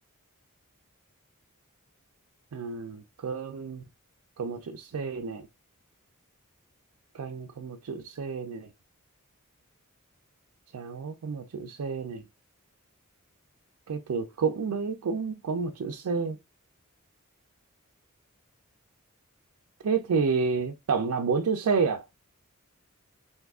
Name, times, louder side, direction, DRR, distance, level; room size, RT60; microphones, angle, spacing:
voice 1, 2.5-3.8 4.4-5.5 7.1-8.7 10.7-12.2 13.9-16.4 19.8-22.0, right 5 dB, 80° right, 0.4 m, -30 dB
3.5 x 2.7 x 2.3 m
head